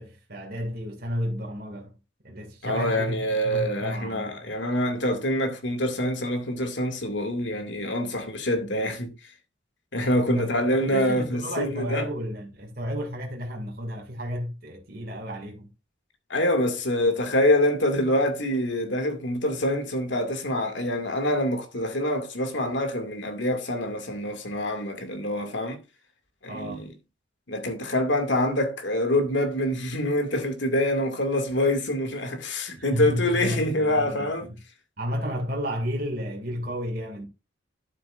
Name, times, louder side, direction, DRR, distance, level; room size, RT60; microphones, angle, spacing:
voice 1, 0.0-2.0 2.2-4.4 10.3-15.7 26.5-26.8 32.8-34.3 35.0-37.3, equal, 50° right, 2.4 m, -32 dB
voice 2, 2.6-9.3 9.9-12.1 16.3-25.8 26.4-26.9 27.5-34.5, left 1 dB, 70° left, 2.3 m, -26 dB
11.5 x 7.8 x 2.5 m
head